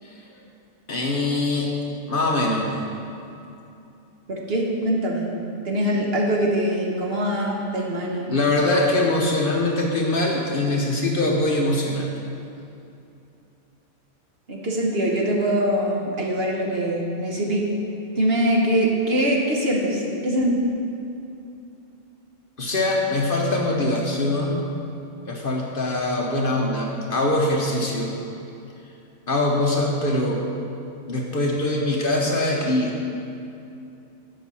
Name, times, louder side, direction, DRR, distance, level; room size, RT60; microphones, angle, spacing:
voice 1, 0.9-1.7 2.1-2.7 8.3-12.1 22.6-24.7 25.3-28.1 29.3-30.4 31.1-33.0, left 2 dB, 50° left, -1 dB, 0.9 m, -23 dB
voice 2, 4.3-5.3 5.6-8.3 14.5-17.6 18.2-20.5, right 1 dB, 50° right, -2 dB, 1.3 m, -23 dB
7.7 x 5.5 x 6.8 m, 2.7 s
omnidirectional pair, 1.3 m